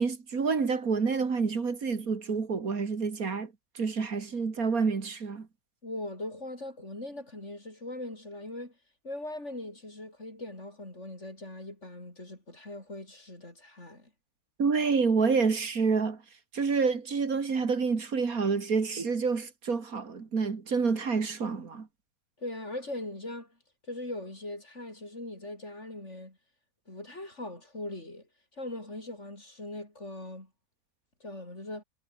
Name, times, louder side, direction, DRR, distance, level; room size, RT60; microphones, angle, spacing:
voice 1, 0.0-5.5 14.6-16.2 16.5-21.9, right 5 dB, 75° right, 2.7 m, -28 dB
voice 2, 5.8-8.7 9.0-14.1 22.4-23.5 23.9-26.4 26.9-28.3 28.5-30.5 31.2-31.8, left 1 dB, 50° left, 6.8 m, -40 dB
omnidirectional pair, 1.5 m